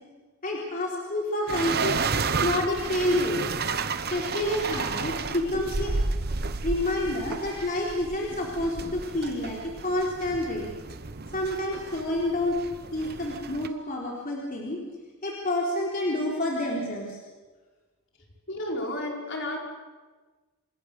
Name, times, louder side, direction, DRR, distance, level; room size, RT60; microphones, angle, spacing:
voice 1, 0.4-2.0 2.4-3.4 4.1-5.9 6.6-10.7 11.3-12.6 12.9-14.8 15.2-17.2, left 1 dB, 40° left, -2 dB, 3.8 m, -28 dB
sound 1, 1.5-13.7, right 4 dB, 45° right, 0.9 m, -32 dB
voice 2, 18.5-19.6, left 1 dB, 55° left, 0 dB, 4.9 m, -32 dB
28.0 x 20.5 x 6.7 m, 1.3 s
head